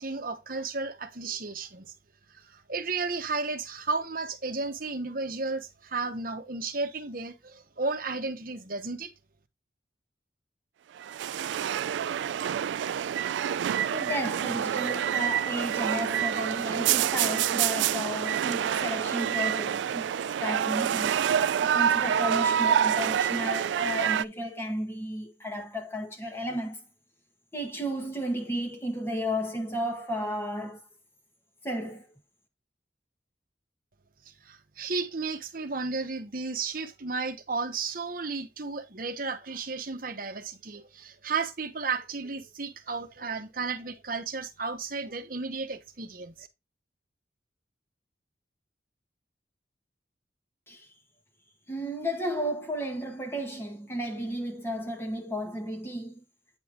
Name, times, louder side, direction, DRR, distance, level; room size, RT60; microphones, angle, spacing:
voice 1, 0.0-1.9 2.5-9.1 34.4-46.5, right 4 dB, 50° right, 1.1 m, -33 dB
sound 1, 11.0-24.2, right 9 dB, 85° right, 0.3 m, -27 dB
voice 2, 13.9-20.1 20.4-21.2 21.6-26.8 27.5-30.8 31.6-32.1 50.7-50.9 51.7-56.2, equal, 15° left, 1.8 m, -33 dB
9.1 x 5.4 x 2.9 m
head